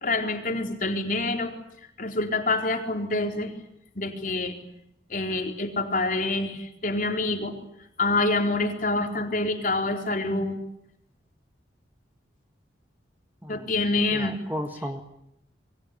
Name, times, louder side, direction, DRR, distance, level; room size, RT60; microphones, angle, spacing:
voice 1, 0.0-1.5 2.0-3.5 4.0-4.6 5.1-7.6 8.0-10.6 13.5-14.3, left 2 dB, 45° left, 4 dB, 4.2 m, -26 dB
voice 2, 13.4-13.7 14.1-15.0, equal, 10° right, 6 dB, 1.7 m, -34 dB
28.0 x 23.0 x 8.7 m, 0.77 s
head